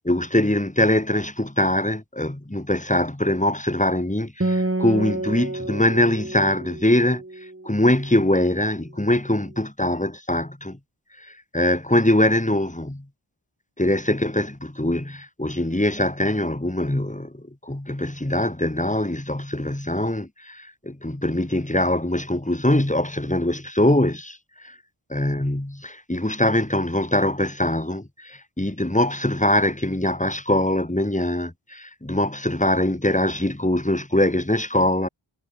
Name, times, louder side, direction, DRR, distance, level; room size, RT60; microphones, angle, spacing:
voice 1, 0.1-7.2 7.6-10.8 11.5-13.0 13.8-24.4 24.6-24.7 25.1-35.1, left 1 dB, 15° left, 3.2 m, -22 dB
Acoustic guitar, 4.4-8.1, right 2 dB, 25° right, 2.5 m, -29 dB
wide cardioid pair, 45°, 47 cm